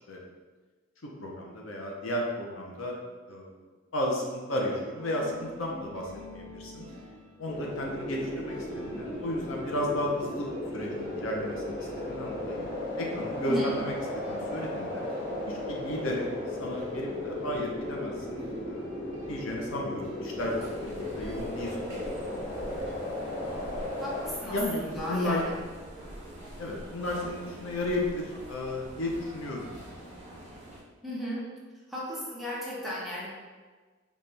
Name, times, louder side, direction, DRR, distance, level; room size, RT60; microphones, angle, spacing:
voice 1, 1.0-2.9 3.3-3.6 3.9-6.9 7.4-12.7 13.0-15.0 15.5-18.9 19.3-20.5 20.8-22.1 23.4-23.8 24.5-25.4 26.6-29.7, left 1 dB, 80° left, -1 dB, 0.7 m, -33 dB
sound 1, 5.0-23.0, right 1 dB, 70° right, 0.6 m, -47 dB
sound 2, 7.5-24.3, left 1 dB, 45° left, 0.9 m, -36 dB
sound 3, 20.4-30.8, right 1 dB, 15° left, 1.1 m, -45 dB
voice 2, 24.0-25.5 31.0-31.5 31.9-33.3, equal, ahead, -7 dB, 0.7 m, -35 dB
4.2 x 2.3 x 3.3 m, 1.4 s
head